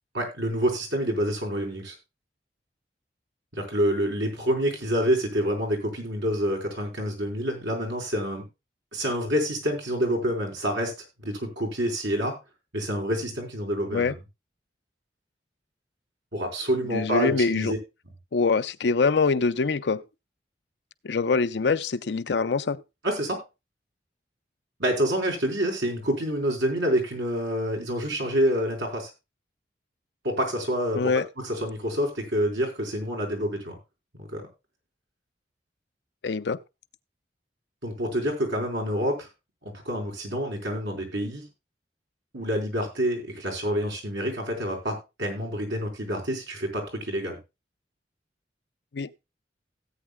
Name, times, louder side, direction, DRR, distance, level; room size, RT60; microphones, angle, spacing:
voice 1, 0.1-1.9 3.5-8.4 8.9-10.9 11.2-12.4 12.7-14.2 16.3-17.8 23.0-23.4 24.8-29.1 30.2-33.8 34.2-34.4 37.8-39.3 39.6-41.4 42.3-47.4, equal, 85° right, 4.3 m, -27 dB
voice 2, 16.9-17.7 18.3-20.0 21.0-22.8 30.9-31.3 36.2-36.6 48.9-49.1, left 4 dB, 75° left, 0.5 m, -24 dB
17.0 x 8.8 x 2.2 m
head